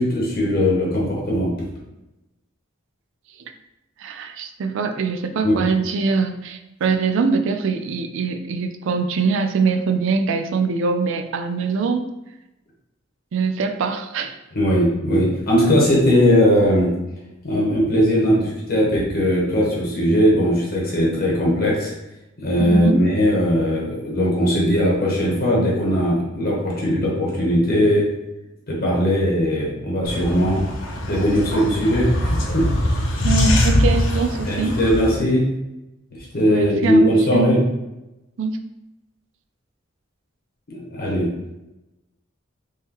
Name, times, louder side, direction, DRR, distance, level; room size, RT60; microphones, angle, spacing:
voice 1, 0.0-1.5 5.4-5.6 14.5-16.9 17.4-21.9 22.4-28.0 28.7-30.6 31.1-32.7 34.4-35.4 36.3-37.6 40.7-41.3, equal, 50° left, -4 dB, 1.0 m, -19 dB
voice 2, 4.0-12.1 13.3-14.4 22.6-23.1 33.2-34.8 36.5-37.0 37.3-37.5 38.4-38.6, right 4 dB, 65° right, 7 dB, 0.4 m, -23 dB
sound 1, 30.1-35.2, left 1 dB, 65° left, 0.7 m, -22 dB
3.7 x 3.0 x 2.9 m, 0.97 s
head